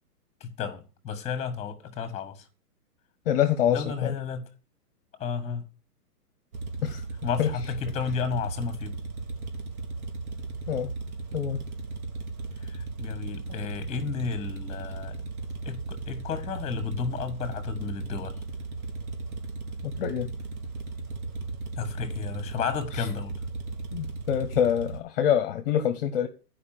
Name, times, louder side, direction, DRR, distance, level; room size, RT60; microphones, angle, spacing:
voice 1, 0.4-2.4 3.7-4.4 5.2-5.7 7.2-8.9 12.6-15.2 15.6-18.4 21.8-23.4, left 6 dB, 15° left, 1.6 m, -32 dB
voice 2, 3.3-4.1 6.8-7.0 7.4-7.5 10.7-10.9 11.3-11.6 19.8-20.3 22.9-23.1 23.9-26.3, left 9 dB, 35° left, 0.8 m, -26 dB
sound 1, 6.5-25.0, right 3 dB, 60° right, 1.8 m, -36 dB
9.6 x 5.1 x 7.6 m
hypercardioid pair, 140°, 47 cm